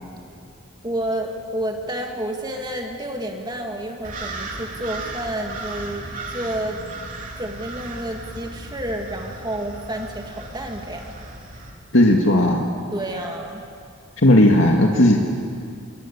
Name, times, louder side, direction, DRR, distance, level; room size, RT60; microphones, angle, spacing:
voice 1, 0.8-6.8 7.4-11.2 12.9-13.6, right 1 dB, 20° right, 2 dB, 2.4 m, -30 dB
sound 1, 4.0-11.7, right 2 dB, 40° right, 3.7 m, -35 dB
voice 2, 11.9-12.7 14.2-15.2, left 1 dB, 70° left, 0 dB, 2.2 m, -15 dB
26.5 x 23.5 x 8.6 m, 2.4 s
head